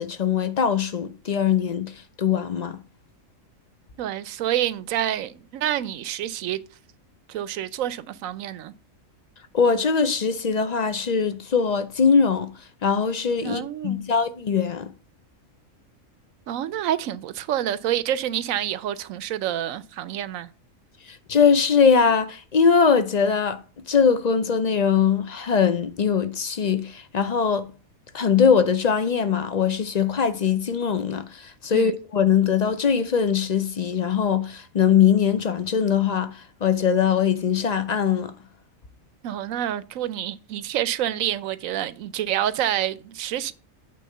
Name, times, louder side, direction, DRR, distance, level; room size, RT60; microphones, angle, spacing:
voice 1, 0.0-2.8 9.5-12.5 12.8-14.9 21.1-23.6 23.9-27.7 28.1-38.3, left 6 dB, 45° left, 0.5 m, -21 dB
voice 2, 4.0-6.6 7.3-8.7 13.4-14.0 16.5-20.5 31.7-31.9 39.2-43.5, right 11 dB, 80° right, 1.0 m, -28 dB
8.6 x 3.5 x 6.6 m
omnidirectional pair, 1.4 m